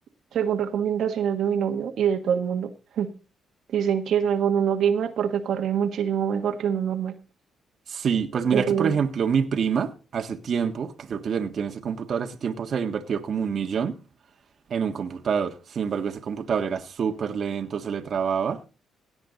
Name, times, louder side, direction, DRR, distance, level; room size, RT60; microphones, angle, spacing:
voice 1, 0.3-2.7 3.0-3.1 3.7-7.1 8.5-8.9, right 8 dB, 70° right, 1.5 m, -24 dB
voice 2, 7.9-14.0 14.7-18.6, right 6 dB, 55° right, 1.4 m, -27 dB
17.0 x 8.1 x 4.0 m
cardioid pair, 90°, 0 cm